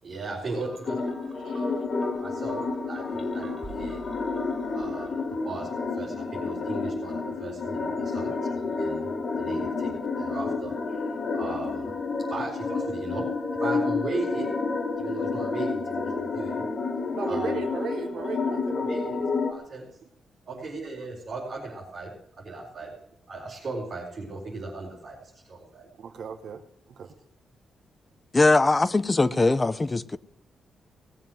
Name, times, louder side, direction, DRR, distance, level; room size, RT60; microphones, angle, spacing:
voice 1, 0.0-1.0 2.2-2.6 2.9-4.0 4.7-9.1 9.4-11.9 12.3-13.3 13.6-14.5 15.0-16.6 17.3-17.6 18.7-19.2 19.5-19.9 20.5-22.1 22.4-22.9 23.3-25.9, right 3 dB, 35° right, 4.2 m, -37 dB
sound 1, 0.6-5.3, right 3 dB, 10° right, 2.0 m, -48 dB
sound 2, 0.9-19.5, left 4 dB, 40° left, 1.5 m, -30 dB
voice 2, 1.0-1.7 8.2-8.6 10.1-10.2 17.1-18.8 20.5-20.6 26.0-26.6 26.9-27.1, right 6 dB, 60° right, 0.9 m, -37 dB
voice 3, 28.3-30.2, left 3 dB, 20° left, 0.6 m, -21 dB
18.5 x 7.4 x 7.7 m
wide cardioid pair, 155°, 0 cm